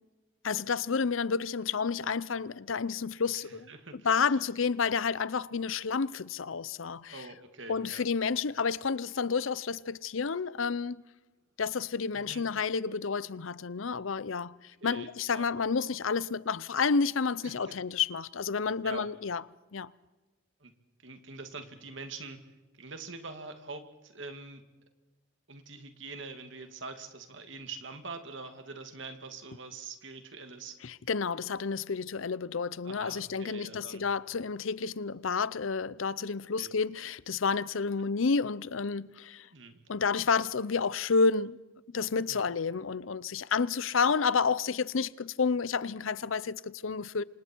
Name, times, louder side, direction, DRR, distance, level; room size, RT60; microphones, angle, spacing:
voice 1, 0.4-7.3 7.7-11.0 11.6-19.4 19.7-19.9 30.8-39.5 39.9-41.6 41.9-47.2, left 5 dB, 75° left, 0.6 m, -30 dB
voice 2, 3.7-4.3 7.1-8.0 12.1-12.4 14.8-15.5 17.4-17.8 18.8-19.1 20.6-20.7 21.0-22.4 22.8-24.6 25.5-30.8 32.8-34.1 36.6-36.7 39.5-39.8 40.1-40.2 42.3-42.4, right 3 dB, 65° right, 2.4 m, -44 dB
28.5 x 25.5 x 4.6 m
head